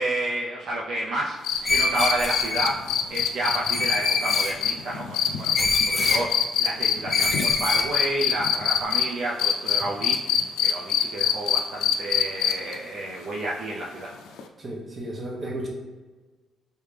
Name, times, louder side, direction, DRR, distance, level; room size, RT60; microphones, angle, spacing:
voice 1, 0.0-2.8 3.1-10.2 10.6-14.1, right 1 dB, 65° right, -4 dB, 0.5 m, -30 dB
sound 1, 1.4-9.0 9.4-12.7 14.4-14.5, left 9 dB, 85° left, 0.3 m, -23 dB
Screech, 1.6-2.7 3.7-4.6 5.5-6.2 7.1-7.9, left 2 dB, 30° left, 0.5 m, -25 dB
voice 2, 14.6-15.7, right 1 dB, 35° right, -1 dB, 1.0 m, -33 dB
3.2 x 2.7 x 3.3 m, 1.3 s
cardioid pair, 90°, 0 cm